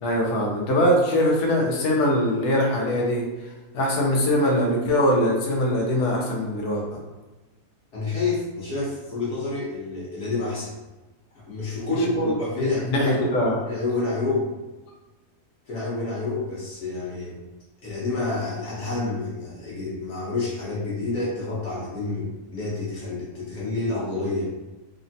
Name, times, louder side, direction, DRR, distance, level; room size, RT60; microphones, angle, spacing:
voice 1, 0.0-3.3 3.7-7.0 12.6-13.6, equal, 80° left, -2 dB, 1.2 m, -22 dB
voice 2, 7.9-10.8 11.3-14.5 15.6-17.4 17.8-24.5, left 2 dB, 55° left, -6 dB, 1.0 m, -28 dB
3.3 x 2.0 x 2.6 m, 1.1 s
omnidirectional pair, 1.7 m